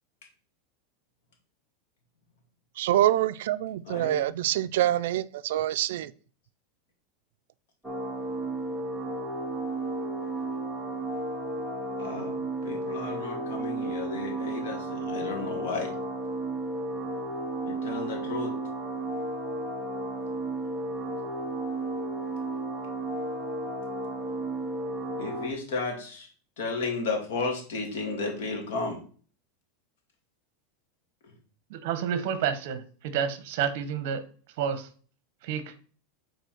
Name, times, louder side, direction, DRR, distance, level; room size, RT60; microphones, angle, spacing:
voice 1, 2.8-6.1, right 13 dB, 75° right, 0.4 m, -26 dB
voice 2, 3.9-4.3 12.0-15.9 17.7-18.5 25.2-26.3 26.6-29.0, left 3 dB, 80° left, 2.5 m, -33 dB
sound 1, 7.8-25.5, right 2 dB, 5° right, 0.9 m, -33 dB
voice 3, 31.7-34.2 34.6-34.9 35.4-35.6, right 8 dB, 55° right, 1.0 m, -29 dB
5.5 x 4.4 x 6.0 m
supercardioid pair, 165°, 0 cm